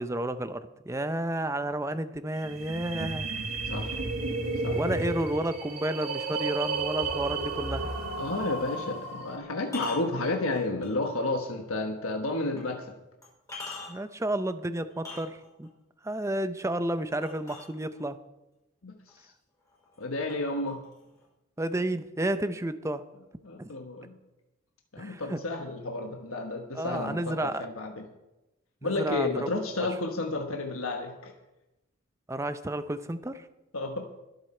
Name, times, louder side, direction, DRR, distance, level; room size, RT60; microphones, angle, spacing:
voice 1, 0.0-3.3 4.7-7.9 13.9-15.7 16.0-18.2 21.6-23.0 23.6-23.7 25.0-25.4 26.7-27.7 28.8-29.5 29.8-29.9 32.3-33.5, right 1 dB, 15° right, 12 dB, 0.6 m, -31 dB
sound 1, 2.4-9.4, right 3 dB, 85° right, 2.4 m, -33 dB
voice 2, 3.7-4.0 4.6-4.8 8.2-12.9 18.8-19.3 20.0-20.8 23.4-24.2 24.9-28.0 28.8-31.3 33.7-34.1, left 2 dB, 85° left, 3 dB, 1.3 m, -32 dB
sound 2, 7.9-8.1 9.6-11.1 11.6-11.7 12.6-12.7 13.2-14.2 14.9-15.7 17.2-18.2 19.1-19.2 19.6-20.0 20.3-21.2, left 3 dB, 15° left, 5.6 m, -43 dB
22.0 x 8.0 x 4.4 m, 0.97 s
head